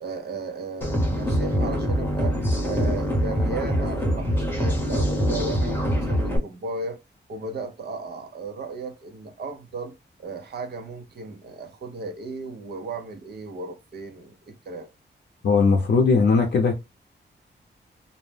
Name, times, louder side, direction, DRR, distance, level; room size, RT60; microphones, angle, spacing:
voice 1, 0.0-2.4 2.6-7.0 7.3-14.9, right 3 dB, 60° right, 0.6 m, -35 dB
sound 1, 0.8-6.4, equal, 10° left, 0.8 m, -24 dB
voice 2, 15.4-16.8, left 4 dB, 65° left, 0.5 m, -19 dB
2.6 x 2.1 x 3.2 m
wide cardioid pair, 165°, 19 cm